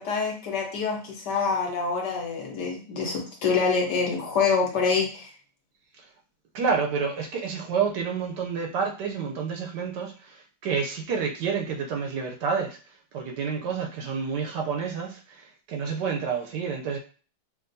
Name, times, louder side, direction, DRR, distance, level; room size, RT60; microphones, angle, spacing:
voice 1, 0.0-5.3, left 5 dB, 60° left, -1 dB, 1.5 m, -26 dB
voice 2, 6.5-12.8 13.1-17.0, right 6 dB, 70° right, 2 dB, 1.1 m, -29 dB
6.2 x 2.6 x 2.6 m, 0.39 s
omnidirectional pair, 2.1 m